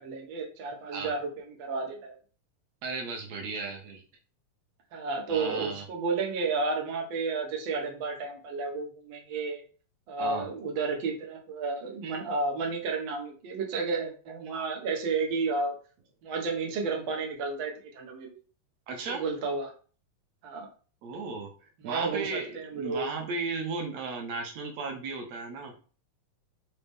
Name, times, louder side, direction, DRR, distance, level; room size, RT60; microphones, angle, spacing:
voice 1, 0.0-2.2 4.9-9.6 10.1-15.7 16.2-18.4 19.1-19.7 20.4-20.7 21.8-23.0, right 4 dB, 90° right, 0 dB, 1.1 m, -32 dB
voice 2, 2.8-4.0 5.3-5.8 10.2-10.5 18.9-19.2 21.0-21.5 21.8-25.7, right 4 dB, 70° right, 2 dB, 1.7 m, -35 dB
5.6 x 2.0 x 3.4 m, 0.38 s
omnidirectional pair, 3.7 m